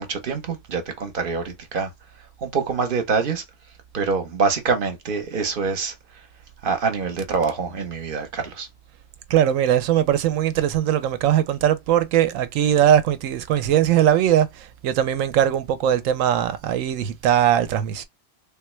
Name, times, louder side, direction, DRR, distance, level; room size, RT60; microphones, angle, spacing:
voice 1, 0.0-1.9 2.4-3.4 3.9-5.9 6.6-8.7, right 5 dB, 50° right, 0.9 m, -25 dB
voice 2, 9.3-18.0, right 10 dB, 85° right, 1.0 m, -20 dB
3.5 x 2.3 x 3.0 m
omnidirectional pair, 1.3 m